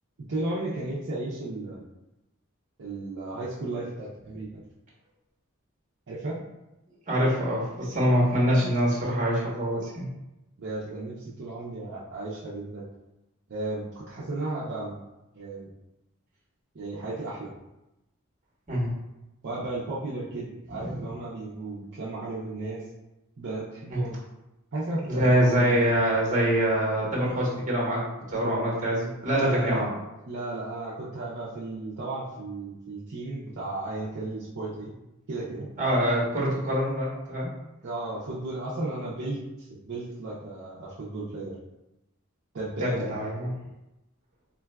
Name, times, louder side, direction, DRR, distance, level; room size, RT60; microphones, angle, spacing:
voice 1, 0.3-1.8 2.8-4.5 6.1-6.4 10.6-12.8 13.5-15.0 15.3-15.7 16.7-17.5 19.4-22.8 23.4-24.2 24.7-25.8 29.3-29.8 30.3-34.9 35.3-35.7 37.8-41.5 42.5-43.2, right 2 dB, 60° right, -8 dB, 0.5 m, -34 dB
voice 2, 7.1-10.1 18.7-18.9 20.7-21.0 23.9-24.0 25.1-29.9 35.8-37.5 42.8-43.5, equal, 35° right, -5 dB, 1.0 m, -25 dB
3.8 x 2.3 x 2.2 m, 0.94 s
head